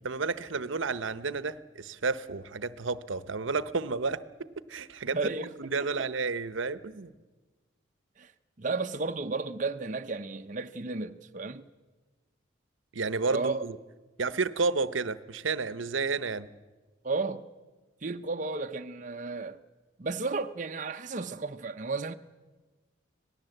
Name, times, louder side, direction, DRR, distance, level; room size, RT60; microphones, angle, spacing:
voice 1, 0.0-5.3 5.6-7.1 12.9-13.8 14.2-16.5, right 4 dB, 80° right, 0.9 m, -31 dB
voice 2, 5.1-6.1 8.2-8.3 8.6-11.7 13.3-13.6 17.0-17.5 18.0-19.6 20.0-22.1, right 3 dB, 40° right, 0.7 m, -33 dB
26.0 x 18.0 x 7.9 m
head